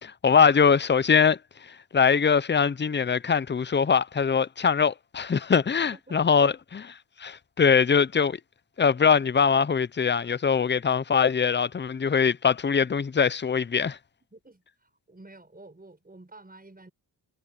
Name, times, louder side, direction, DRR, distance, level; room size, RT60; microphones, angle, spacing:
voice 1, 0.0-6.8 7.2-8.4 8.8-14.0, left 6 dB, 25° left, 0.5 m, -22 dB
voice 2, 5.9-6.5 14.3-16.9, right 2 dB, 20° right, 7.0 m, -50 dB
wide cardioid pair, 90°, 41 cm